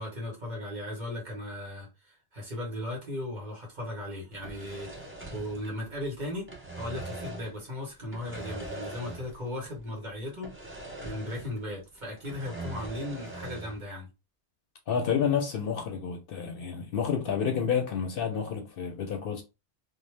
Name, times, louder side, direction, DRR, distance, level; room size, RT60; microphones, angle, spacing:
voice 1, 0.0-6.5 6.7-10.5 11.0-14.1, left 1 dB, 45° right, 1.2 m, -37 dB
sound 1, 4.3-6.1 6.3-7.6 8.1-9.5 9.7-9.8 10.4-11.7 12.0-13.8, right 2 dB, 15° right, 0.5 m, -41 dB
voice 2, 14.9-19.4, left 7 dB, 65° left, 0.7 m, -29 dB
2.6 x 2.1 x 3.2 m
omnidirectional pair, 1.1 m